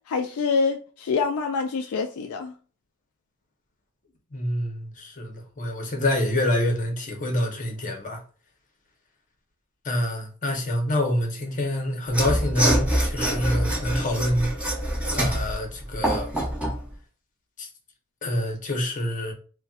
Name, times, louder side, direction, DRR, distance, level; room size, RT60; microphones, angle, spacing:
voice 1, 0.1-2.5, left 5 dB, 70° left, 0.3 m, -26 dB
voice 2, 4.3-8.2 9.8-14.5 15.1-16.3 17.6-17.7 18.2-19.3, left 1 dB, 40° left, 0.8 m, -26 dB
Mechanisms / Sawing, 12.1-16.8, right 1 dB, 5° right, 0.9 m, -25 dB
4.0 x 2.2 x 2.3 m
head